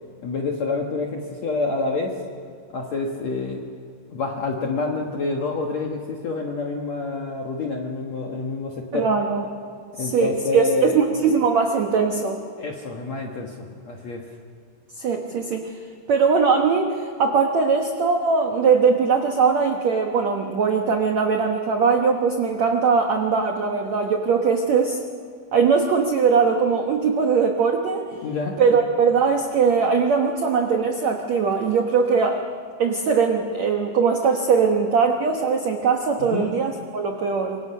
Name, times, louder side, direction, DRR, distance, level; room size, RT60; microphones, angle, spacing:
voice 1, 0.2-2.2 2.7-3.6 4.1-9.1 10.0-11.0 12.6-14.3 28.2-28.6 36.2-36.5, left 3 dB, 65° left, 1 dB, 1.7 m, -27 dB
voice 2, 8.9-9.4 10.0-12.4 15.0-15.7 16.1-25.0 25.5-28.1 28.6-32.4 32.8-37.6, right 5 dB, 90° right, 3 dB, 1.5 m, -20 dB
26.5 x 24.5 x 5.6 m, 2.3 s
omnidirectional pair, 5.2 m